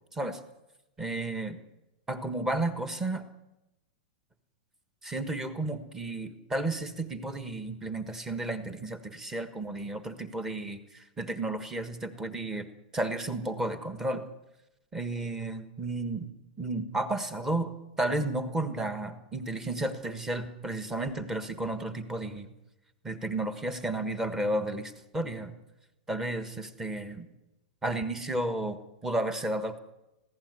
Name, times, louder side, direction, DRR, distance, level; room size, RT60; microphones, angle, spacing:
voice 1, 1.0-1.6 2.1-3.2 5.0-12.7 12.9-14.2 14.9-16.3 16.6-17.7 18.0-22.5 23.0-25.5 26.1-27.3 27.8-29.8, right 2 dB, 10° right, 9 dB, 1.4 m, -32 dB
20.0 x 16.0 x 9.7 m, 0.98 s
supercardioid pair, 160°, 5 cm